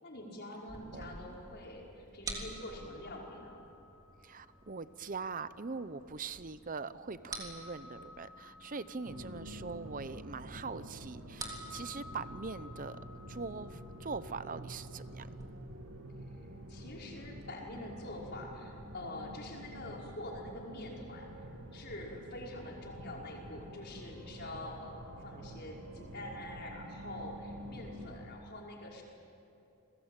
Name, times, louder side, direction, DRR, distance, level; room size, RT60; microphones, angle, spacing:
voice 1, 0.0-3.7 16.7-21.3 21.7-29.0, left 1 dB, 50° left, -2 dB, 5.5 m, -45 dB
sound 1, 0.7-15.5, right 1 dB, 15° right, 3.4 m, -50 dB
voice 2, 0.9-1.4 4.2-13.0 13.3-15.3, right 4 dB, 40° right, 14 dB, 0.8 m, -42 dB
sound 2, 9.1-28.3, right 1 dB, 65° right, 2.5 m, -48 dB
29.5 x 21.0 x 9.0 m, 2.7 s
head